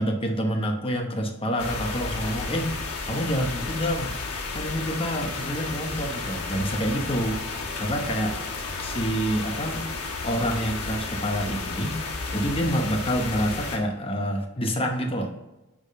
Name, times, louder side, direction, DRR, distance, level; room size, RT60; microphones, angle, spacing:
voice 1, 0.0-4.1 4.5-7.4 7.8-8.4 8.8-9.8 10.2-12.0 12.3-15.3, equal, 25° left, 3 dB, 0.8 m, -27 dB
sound 1, 1.6-13.8, left 3 dB, 85° left, 1.4 m, -32 dB
9.7 x 3.8 x 3.6 m, 1.0 s
head